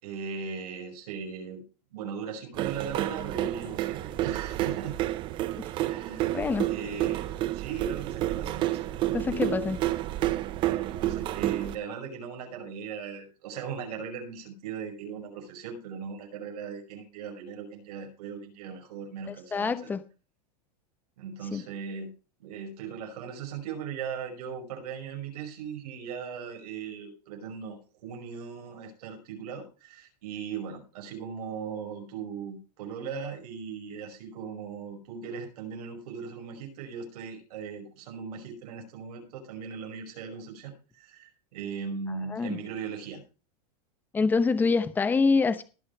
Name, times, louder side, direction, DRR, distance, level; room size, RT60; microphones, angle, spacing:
voice 1, 0.0-1.6 1.9-5.0 5.9-6.4 6.6-8.9 10.6-19.7 21.2-22.1 22.4-43.2, right 6 dB, 70° right, 4 dB, 5.5 m, -38 dB
sound 1, 2.6-11.7, right 15 dB, 25° right, 0.6 m, -30 dB
voice 2, 6.3-6.7 9.1-9.8 19.3-20.0 21.5-21.6 42.1-42.6 44.1-45.6, left 4 dB, 10° left, 12 dB, 0.8 m, -26 dB
19.0 x 6.4 x 4.7 m, 0.34 s
supercardioid pair, 165°, 21 cm